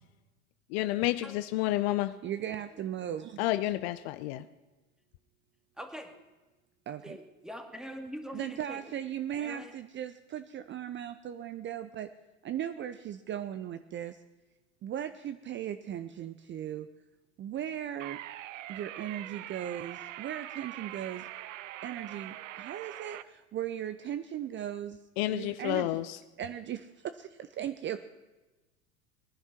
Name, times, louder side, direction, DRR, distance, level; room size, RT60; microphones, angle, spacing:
voice 1, 0.7-2.2 3.4-4.5 25.2-26.2, left 16 dB, 50° left, 14 dB, 0.7 m, -30 dB
voice 2, 2.2-3.4 6.9-7.2 8.3-12.1 12.4-14.2 14.8-16.9 17.4-18.2 18.7-21.3 21.8-25.0 25.3-25.9 26.4-28.1, right 10 dB, 30° right, 11 dB, 0.7 m, -37 dB
voice 3, 5.8-6.1 7.0-8.8 9.4-9.7, equal, ahead, 5 dB, 2.2 m, -43 dB
sound 1, 18.0-23.2, right 14 dB, 65° right, 0.7 m, -43 dB
19.5 x 11.0 x 5.9 m, 1.1 s
figure-of-eight pair, 80°, 41 cm